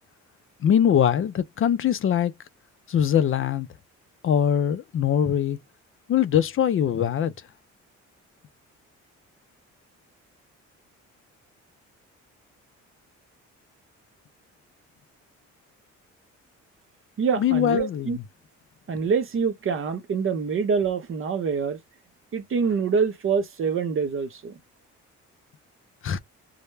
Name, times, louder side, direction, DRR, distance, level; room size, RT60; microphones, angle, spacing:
voice 1, 0.6-2.3 2.9-3.7 4.2-5.6 6.1-7.3 17.4-18.2 26.0-26.2, left 9 dB, 45° left, 0.4 m, -22 dB
voice 2, 17.2-18.2 18.9-21.8 22.3-24.6, right 5 dB, 45° right, 0.7 m, -25 dB
2.1 x 2.0 x 3.1 m
cardioid pair, 90°, 30 cm